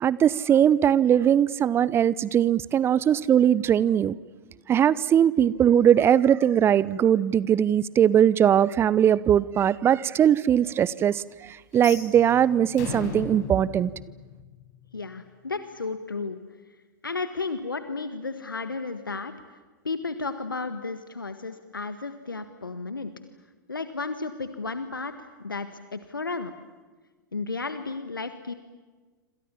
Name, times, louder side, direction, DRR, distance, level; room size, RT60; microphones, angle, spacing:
voice 1, 0.0-4.2 4.7-11.2 11.7-13.9, right 9 dB, 20° right, 0.8 m, -20 dB
sound 1, 11.7-14.8, left 5 dB, 50° left, 6.0 m, -37 dB
voice 2, 14.9-16.4 17.0-19.3 19.8-23.1 23.7-26.5 27.3-28.5, left 4 dB, 80° left, 1.6 m, -33 dB
27.5 x 27.0 x 7.4 m
figure-of-eight pair, 100°, 11 cm